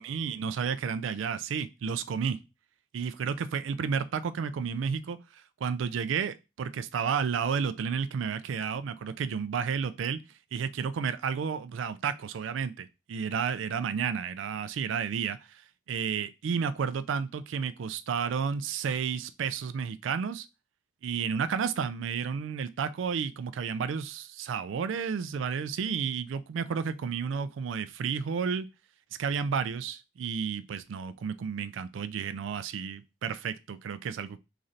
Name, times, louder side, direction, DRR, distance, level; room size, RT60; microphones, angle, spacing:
voice 1, 0.0-2.4 2.9-5.2 5.6-10.2 10.5-15.6 15.9-20.5 21.0-28.7 29.2-34.4, right 6 dB, 80° right, 0.3 m, -31 dB
3.8 x 3.1 x 2.6 m
head